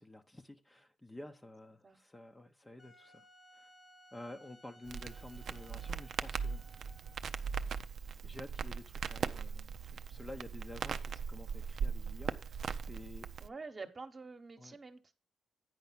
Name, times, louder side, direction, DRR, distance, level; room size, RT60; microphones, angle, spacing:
voice 1, 0.0-3.2 3.5-3.7 4.1-6.6 7.6-7.7 8.2-13.3 14.6-14.8, left 1 dB, 15° left, 0.7 m, -51 dB
Wind instrument woodwind instrument, 2.8-7.3, equal, 30° left, 1.1 m, -61 dB
Crackle, 4.9-13.5, right 6 dB, 60° right, 0.5 m, -39 dB
voice 2, 13.4-15.1, right 4 dB, 30° right, 1.2 m, -47 dB
9.4 x 4.8 x 5.7 m
cardioid pair, 85°, 0 cm